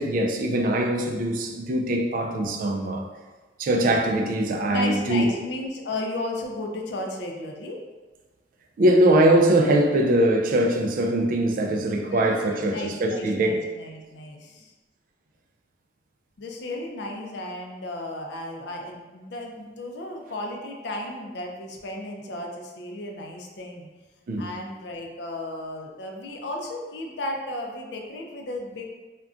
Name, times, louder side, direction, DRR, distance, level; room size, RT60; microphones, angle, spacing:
voice 1, 0.0-3.0 3.6-5.3 8.8-13.5 24.3-24.5, right 1 dB, 50° right, 3 dB, 0.3 m, -22 dB
voice 2, 4.7-7.8 12.1-14.7 16.4-23.9 24.4-28.8, left 1 dB, 65° left, 1 dB, 0.4 m, -34 dB
2.4 x 2.2 x 3.6 m, 1.2 s
head